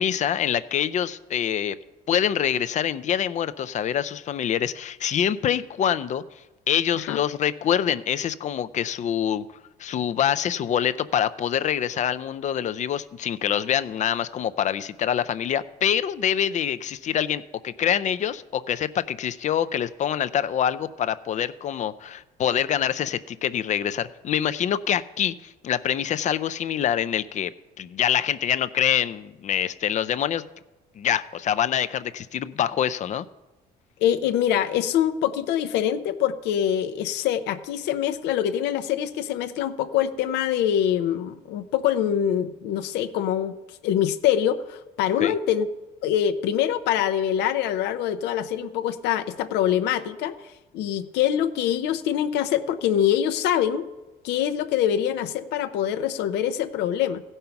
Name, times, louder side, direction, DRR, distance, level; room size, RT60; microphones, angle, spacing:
voice 1, 0.0-1.8 2.1-6.2 6.7-9.4 9.8-27.5 27.8-30.4 31.0-33.3 45.2-45.3, left 9 dB, 45° left, 13 dB, 0.5 m, -25 dB
voice 2, 34.0-43.5 43.8-45.7 46.0-50.3 50.7-53.9 54.2-57.2, left 10 dB, 85° left, 9 dB, 0.7 m, -24 dB
16.0 x 5.5 x 5.8 m, 1.1 s
cardioid pair, 110°, 17 cm